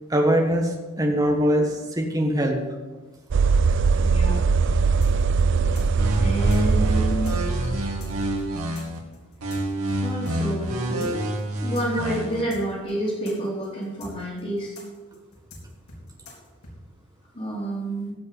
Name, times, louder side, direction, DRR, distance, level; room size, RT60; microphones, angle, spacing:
voice 1, 0.1-2.6, equal, 15° right, 2 dB, 1.4 m, -22 dB
sound 1, 3.3-8.5, right 4 dB, 55° right, 0.4 m, -21 dB
voice 2, 4.0-4.4 6.2-8.0 8.5-8.8 10.0-11.1 11.6-14.7 17.3-18.1, right 1 dB, 35° left, -9 dB, 3.1 m, -29 dB
sound 2, 5.0-10.3 10.6-10.7 11.0-16.7, left 2 dB, 90° left, 4.0 m, -44 dB
sound 3, 6.0-9.0 9.4-12.4, right 1 dB, 80° right, 2.4 m, -28 dB
15.5 x 5.3 x 8.4 m, 1.3 s
head